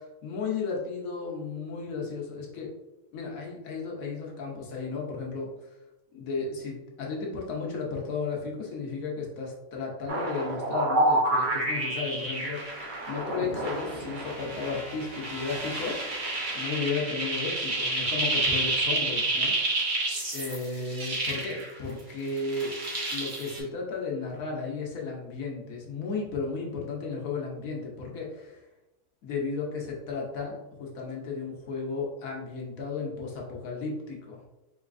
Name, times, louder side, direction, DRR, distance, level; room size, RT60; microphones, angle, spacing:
voice 1, 0.0-2.7 3.1-5.5 6.1-16.0 16.5-19.5 20.3-22.7 23.1-28.6 29.2-34.4, left 4 dB, 70° left, -1 dB, 1.2 m, -34 dB
sound 1, 10.1-22.0 22.3-23.6, right 2 dB, 40° right, 0.8 m, -29 dB
3.9 x 2.8 x 2.5 m, 0.97 s
omnidirectional pair, 1.6 m